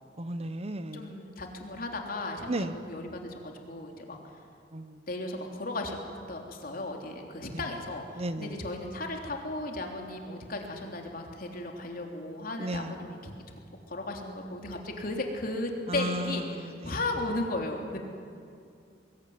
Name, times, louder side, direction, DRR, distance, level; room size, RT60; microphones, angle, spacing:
voice 1, 0.2-1.1 2.5-2.7 4.7-5.0 8.2-8.5 12.6-12.9 15.9-16.2 16.9-17.0, right 1 dB, 35° right, 10 dB, 1.0 m, -33 dB
voice 2, 0.9-4.2 5.1-6.0 6.3-13.3 13.9-18.0, left 2 dB, 55° left, 2 dB, 3.5 m, -35 dB
24.5 x 22.0 x 9.6 m, 2.4 s
head